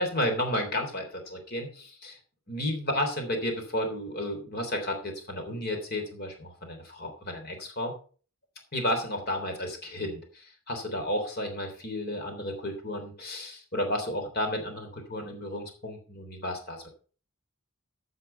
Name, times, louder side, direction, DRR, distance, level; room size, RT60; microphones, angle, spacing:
voice 1, 0.0-2.2 2.5-7.9 8.7-16.9, left 1 dB, 45° left, 4 dB, 3.4 m, -32 dB
15.0 x 5.9 x 5.6 m, 0.40 s
head